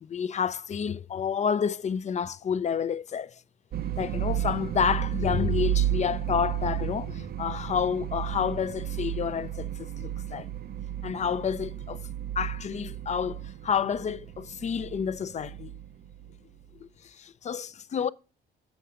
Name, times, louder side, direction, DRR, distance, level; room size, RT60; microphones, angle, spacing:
voice 1, 0.0-3.4 4.0-10.5 11.0-12.0 12.4-15.7 16.8-18.1, left 7 dB, 35° left, 0.4 m, -29 dB
sound 1, 3.7-16.6, right 11 dB, 50° right, 0.5 m, -33 dB
8.1 x 5.6 x 3.7 m
cardioid pair, 90°, 20 cm